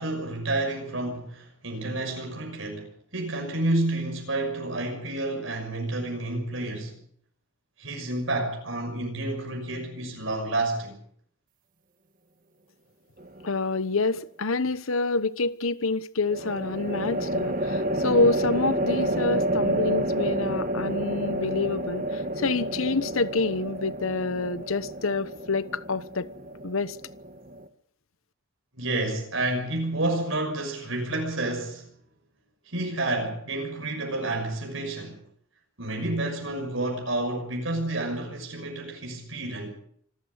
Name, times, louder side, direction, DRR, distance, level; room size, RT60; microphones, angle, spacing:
voice 1, 0.0-7.0 7.8-11.0 28.8-31.9 32.7-35.2 35.8-39.7, right 2 dB, 70° right, 6.1 m, -30 dB
sound 1, 13.2-13.8 16.3-27.7, right 1 dB, 40° right, 1.5 m, -29 dB
voice 2, 13.4-26.3 26.6-27.0, left 3 dB, 85° left, 1.1 m, -27 dB
26.0 x 14.5 x 8.2 m
head